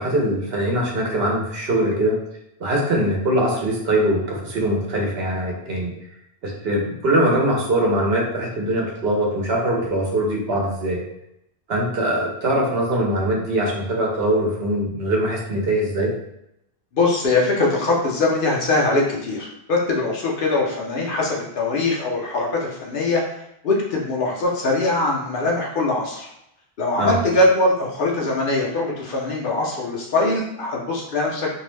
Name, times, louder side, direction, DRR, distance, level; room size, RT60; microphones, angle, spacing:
voice 1, 0.0-2.1 2.6-5.9 6.4-11.0 11.7-16.1 27.0-27.2, right 1 dB, 70° right, -1 dB, 0.9 m, -22 dB
voice 2, 16.9-23.2 23.6-26.3 26.8-31.5, left 2 dB, 60° left, -2 dB, 0.7 m, -22 dB
2.6 x 2.0 x 3.1 m, 0.81 s
omnidirectional pair, 1.1 m